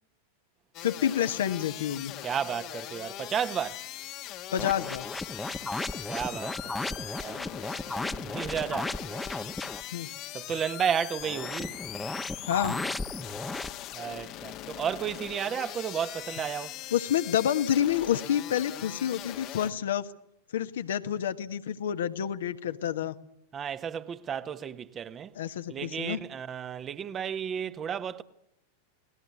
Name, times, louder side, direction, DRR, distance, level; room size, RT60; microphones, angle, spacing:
sound 1, 0.7-19.7, left 14 dB, 40° left, 1.3 m, -41 dB
voice 1, 0.8-2.1 4.5-5.0 9.9-10.1 12.4-12.8 16.9-20.0 20.5-23.1 25.3-26.2, left 10 dB, 60° left, 1.3 m, -28 dB
voice 2, 2.2-3.8 6.1-7.4 8.2-9.0 10.3-11.8 13.9-16.7 23.5-25.3 25.7-28.2, right 8 dB, 25° right, 1.2 m, -33 dB
sound 2, 4.6-9.8 11.2-13.7, left 2 dB, 5° left, 1.2 m, -35 dB
30.0 x 19.0 x 9.6 m
figure-of-eight pair, 90°, 0 cm